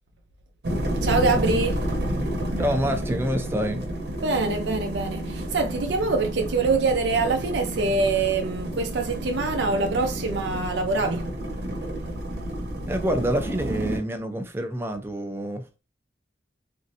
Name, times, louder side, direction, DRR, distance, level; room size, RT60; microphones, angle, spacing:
sound 1, 0.6-14.0, right 1 dB, 70° right, 0.9 m, -30 dB
voice 1, 1.0-1.8 4.2-11.3, right 3 dB, 85° right, 0.5 m, -24 dB
voice 2, 2.6-3.8 12.9-15.7, equal, 15° right, 0.4 m, -27 dB
3.1 x 2.6 x 2.7 m
head